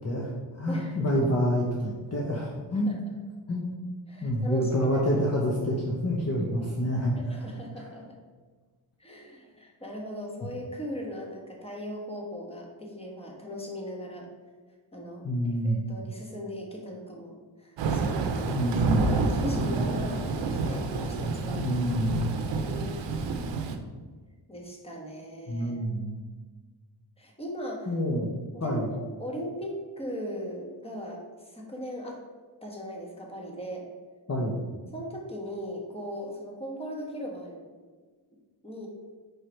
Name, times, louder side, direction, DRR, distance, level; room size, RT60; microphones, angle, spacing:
voice 1, 0.0-3.0 3.5-3.7 4.2-7.2 10.4-10.5 15.2-15.9 18.4-19.1 21.6-22.4 25.5-26.2 27.9-28.3 28.6-28.9 34.3-34.6, equal, 30° left, -3 dB, 0.9 m, -27 dB
voice 2, 0.7-1.1 2.8-2.9 4.1-5.1 7.2-8.2 9.0-14.3 14.9-21.6 22.6-23.1 24.5-25.8 27.2-27.9 28.5-32.2 32.6-33.8 34.9-37.7 38.6-38.9, equal, 10° left, -1 dB, 1.3 m, -38 dB
Thunder / Rain, 17.8-23.8, right 3 dB, 70° right, 0.7 m, -28 dB
4.9 x 4.7 x 4.5 m, 1.4 s
cardioid pair, 105°, 47 cm